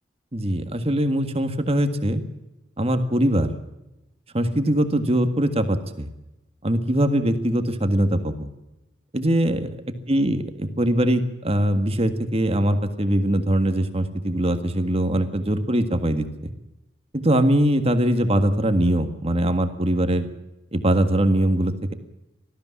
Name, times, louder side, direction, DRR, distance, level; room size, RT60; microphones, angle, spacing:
voice 1, 0.3-2.2 2.8-3.5 4.3-6.1 6.6-8.5 9.1-9.7 10.1-16.2 17.1-20.3 20.7-21.9, right 1 dB, 35° right, 9 dB, 1.7 m, -22 dB
19.0 x 14.0 x 9.7 m, 0.95 s
head